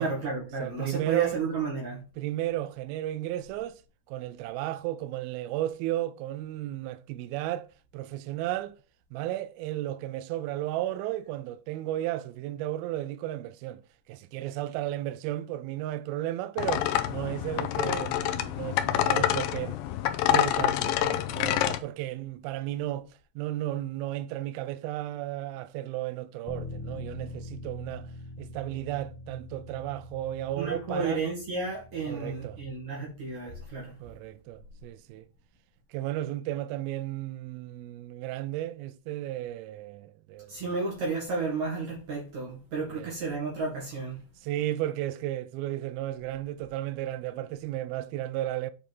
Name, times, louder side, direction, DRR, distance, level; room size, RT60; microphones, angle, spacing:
voice 1, 0.0-2.0 30.6-33.9 40.5-44.2, right 4 dB, 50° right, 2.9 m, -32 dB
voice 2, 0.6-1.4 2.2-3.8 4.1-7.7 7.9-8.7 9.1-13.8 14.1-19.8 20.3-23.1 23.4-28.1 28.4-31.2 32.1-32.6 34.0-35.2 35.9-40.6 43.0-43.1 44.4-48.7, right 14 dB, 85° right, 2.2 m, -34 dB
sound 1, 16.6-21.8, left 12 dB, 85° left, 2.0 m, -27 dB
Bass guitar, 26.5-32.7, left 2 dB, 70° left, 1.8 m, -43 dB
8.5 x 5.1 x 5.4 m
omnidirectional pair, 4.9 m